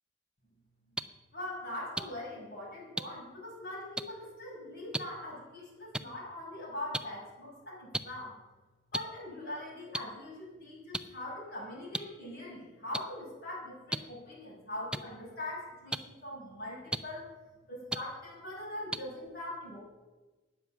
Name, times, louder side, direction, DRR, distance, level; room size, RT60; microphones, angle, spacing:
sound 1, 1.0-1.1 2.0-2.1 3.0-3.1 4.0-4.1 4.9-5.0 5.9-6.0 6.9-7.0 7.9-8.0 8.9-9.0 9.9-10.0 10.9-11.0 11.9-12.0 12.9-13.0 13.9-14.0 14.9-15.0 15.9-16.0 16.9-17.0 17.9-18.0 18.9-19.0, right 1 dB, 5° right, 0.4 m, -32 dB
voice 1, 1.3-8.4 8.9-17.3 17.7-19.8, left 1 dB, 60° left, -6 dB, 5.9 m, -42 dB
12.5 x 9.5 x 7.2 m, 1.2 s
head